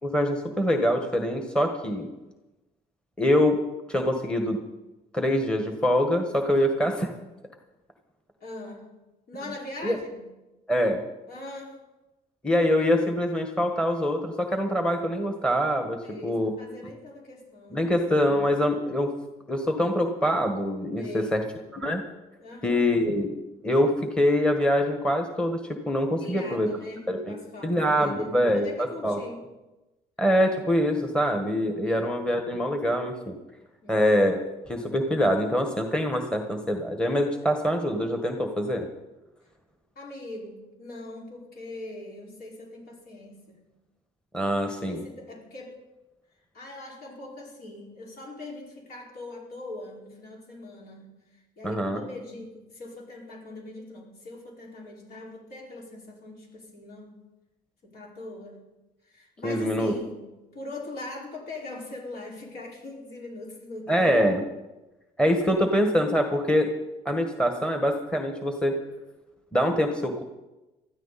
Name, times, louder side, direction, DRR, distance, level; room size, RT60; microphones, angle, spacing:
voice 1, 0.0-2.1 3.2-3.6 3.9-4.6 5.1-7.1 9.8-10.0 10.7-11.0 12.4-16.0 16.2-16.5 17.7-19.1 19.5-21.4 21.7-22.0 22.6-23.4 23.6-25.6 25.9-26.7 27.1-27.2 27.6-29.2 30.2-33.3 33.9-34.4 34.7-38.9 44.3-45.0 51.6-52.0 59.4-59.9 63.9-64.4 65.2-66.7 67.0-68.7 69.5-70.2, equal, 5° left, 4 dB, 1.5 m, -24 dB
voice 2, 8.4-8.9 9.3-10.3 11.3-11.8 16.0-17.9 21.0-21.4 22.4-22.9 26.2-29.4 31.9-32.1 33.8-34.1 40.0-43.6 44.9-45.8 46.5-57.2 57.8-58.6 59.1-60.3 60.5-64.1 65.5-65.6, left 2 dB, 65° left, -3 dB, 5.3 m, -41 dB
20.0 x 13.0 x 4.2 m, 1.1 s
cardioid pair, 110°, 17 cm